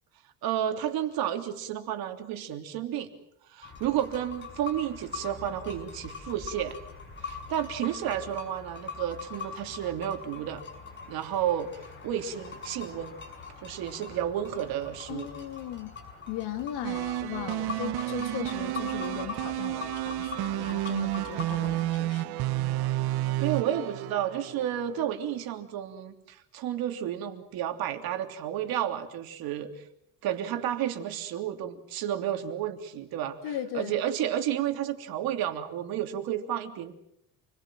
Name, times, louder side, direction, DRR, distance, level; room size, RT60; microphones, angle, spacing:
voice 1, 0.4-3.1 3.5-6.8 7.2-10.6 11.1-13.2 13.6-15.3 23.4-29.8 30.2-33.4 33.7-36.9, right 10 dB, 70° right, 3.2 m, -31 dB
sound 1, 3.6-21.9, left 5 dB, 30° left, 6.7 m, -42 dB
voice 2, 15.1-16.0 16.3-22.3 33.4-34.0, left 11 dB, 85° left, 2.8 m, -38 dB
sound 2, 16.8-25.0, right 16 dB, 90° right, 1.3 m, -31 dB
29.0 x 21.5 x 7.7 m
cardioid pair, 170°, 38 cm